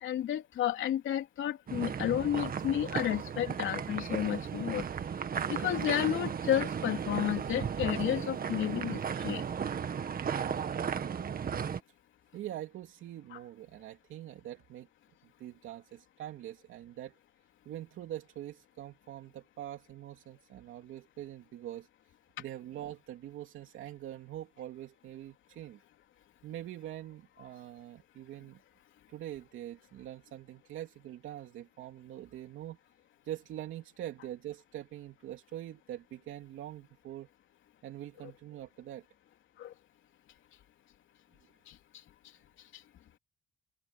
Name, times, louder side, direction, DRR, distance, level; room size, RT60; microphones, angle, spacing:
voice 1, 0.0-4.8 5.5-9.4 13.3-13.4 39.6-39.7 41.7-41.8, left 11 dB, 75° left, 3.2 m, -32 dB
sound 1, 1.7-11.8, right 7 dB, 45° right, 1.7 m, -35 dB
voice 2, 12.3-14.9 15.4-17.1 17.6-21.9 22.4-25.8 26.4-28.6 29.1-32.8 33.2-37.3 37.8-39.0, right 12 dB, 85° right, 2.9 m, -44 dB
cardioid pair, 90°, 20 cm